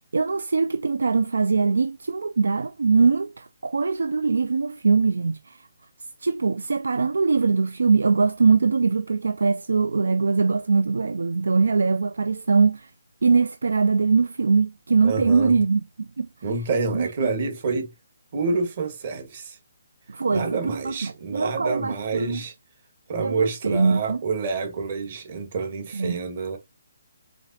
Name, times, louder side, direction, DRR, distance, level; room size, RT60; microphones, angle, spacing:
voice 1, 0.0-5.6 6.2-12.9 13.2-16.3 16.9-17.3 20.1-22.4 23.2-24.2 25.9-26.2, right 4 dB, 90° right, 0.3 m, -22 dB
voice 2, 15.0-15.6 16.4-17.9 18.3-19.6 20.3-22.5 23.1-26.6, right 4 dB, 40° right, 1.5 m, -28 dB
4.9 x 3.9 x 2.8 m
hypercardioid pair, 165°, 0 cm